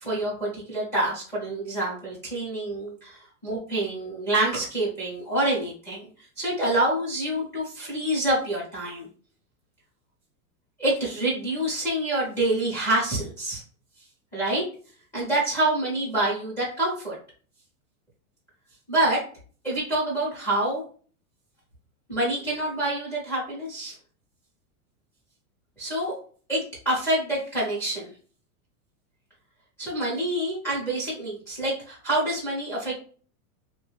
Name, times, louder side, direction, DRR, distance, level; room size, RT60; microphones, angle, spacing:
voice 1, 0.0-6.1 6.4-9.1 10.8-13.6 14.3-14.6 15.1-17.2 18.9-19.2 19.6-20.8 22.1-23.9 25.8-26.1 26.5-28.1 29.8-33.0, right 1 dB, 5° left, -7 dB, 0.5 m, -27 dB
3.0 x 2.2 x 3.2 m, 0.43 s
supercardioid pair, 170°, 44 cm